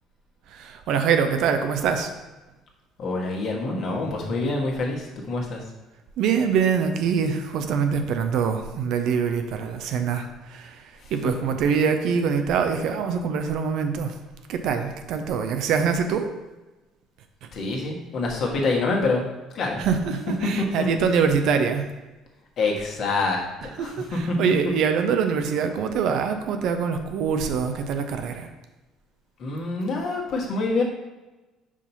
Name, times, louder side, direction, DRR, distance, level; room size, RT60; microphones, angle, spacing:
voice 1, 0.5-2.1 6.2-14.2 14.5-16.3 19.8-21.8 23.6-28.5, right 6 dB, 60° right, 7 dB, 0.6 m, -24 dB
voice 2, 3.0-5.6 17.5-19.3 19.5-19.8 20.8-20.9 22.6-23.4 23.8-23.9 24.3-24.4 29.4-30.8, left 3 dB, 50° left, -1 dB, 1.5 m, -26 dB
5.6 x 5.0 x 4.1 m, 1.1 s
figure-of-eight pair, 55°, 0 cm